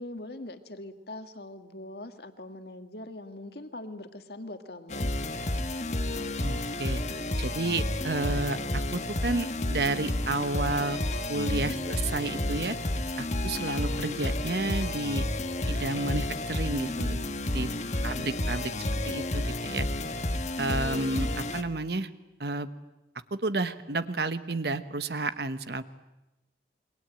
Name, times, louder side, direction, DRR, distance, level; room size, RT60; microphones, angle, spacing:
voice 1, 0.0-5.1 11.4-11.8 17.6-18.6, left 2 dB, 60° left, 7 dB, 1.9 m, -42 dB
sound 1, 4.9-21.6, left 1 dB, 40° left, 1.3 m, -31 dB
voice 2, 6.4-7.0 7.4-11.0 11.3-12.8 13.2-15.2 15.7-17.2 17.5-17.7 18.0-18.7 19.0-19.9 20.6-22.1 22.4-22.7 23.3-25.8, right 2 dB, 65° right, 12 dB, 1.2 m, -31 dB
27.5 x 23.0 x 8.8 m, 0.97 s
head